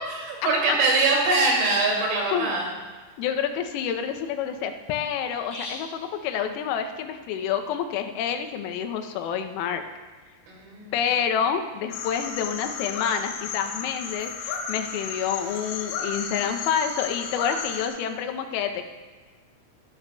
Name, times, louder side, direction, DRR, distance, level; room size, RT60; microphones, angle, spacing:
voice 1, 0.0-2.7 10.5-10.9, right 3 dB, 70° right, -2 dB, 4.7 m, -23 dB
sound 1, 1.6-2.1 5.5-6.0, left 2 dB, 35° left, 2.8 m, -37 dB
voice 2, 3.2-9.8 10.9-18.9, left 8 dB, 90° left, 6 dB, 3.4 m, -28 dB
sound 2, 11.9-17.9, left 6 dB, 70° left, 2.7 m, -33 dB
13.5 x 12.0 x 2.3 m, 1.4 s
omnidirectional pair, 5.9 m